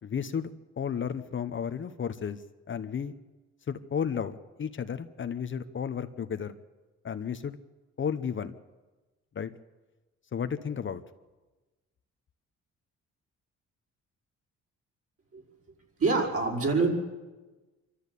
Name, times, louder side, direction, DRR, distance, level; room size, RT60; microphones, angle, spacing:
voice 1, 0.0-2.4 2.7-3.1 3.7-6.6 7.0-7.6 8.0-8.6 9.3-9.5 10.3-11.0, left 7 dB, 40° left, 11 dB, 0.9 m, -33 dB
voice 2, 16.0-16.9, right 4 dB, 50° right, 0 dB, 5.3 m, -25 dB
25.5 x 13.0 x 8.3 m, 1.2 s
cardioid pair, 90°, 30 cm